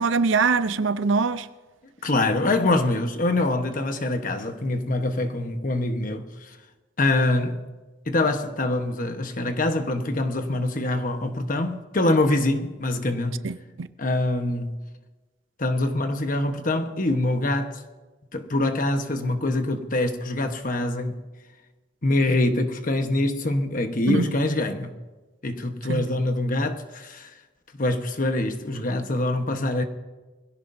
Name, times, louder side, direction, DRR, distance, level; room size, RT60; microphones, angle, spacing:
voice 1, 0.0-1.5 13.4-13.9 24.1-24.3 25.9-26.1, right 4 dB, 75° right, 0.6 m, -23 dB
voice 2, 2.0-6.6 7.0-7.6 8.1-13.5 14.0-14.8 15.6-17.8 18.3-21.2 22.0-24.9 25.4-27.3 27.8-29.8, left 2 dB, 45° left, 1.1 m, -24 dB
21.5 x 16.5 x 2.7 m
head